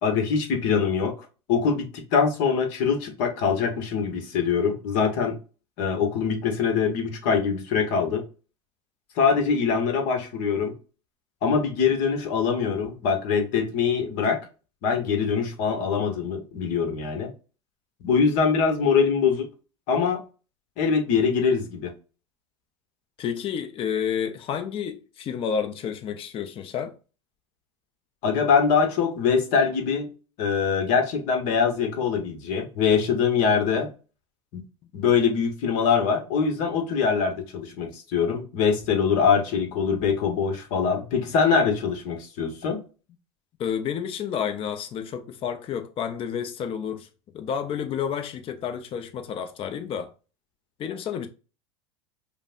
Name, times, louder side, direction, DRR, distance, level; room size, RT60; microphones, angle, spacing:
voice 1, 0.0-1.1 1.5-5.3 5.8-8.2 9.2-10.7 11.4-14.4 14.8-17.3 18.0-19.5 19.9-20.2 20.8-21.9 28.2-30.1 30.4-33.9 34.5-34.6 34.9-42.8, left 6 dB, 60° left, 1.2 m, -23 dB
voice 2, 23.2-26.9 43.6-47.1 47.3-50.1 50.8-51.3, left 8 dB, 40° left, 0.6 m, -30 dB
5.1 x 2.2 x 2.5 m
hypercardioid pair, 95°, 15 cm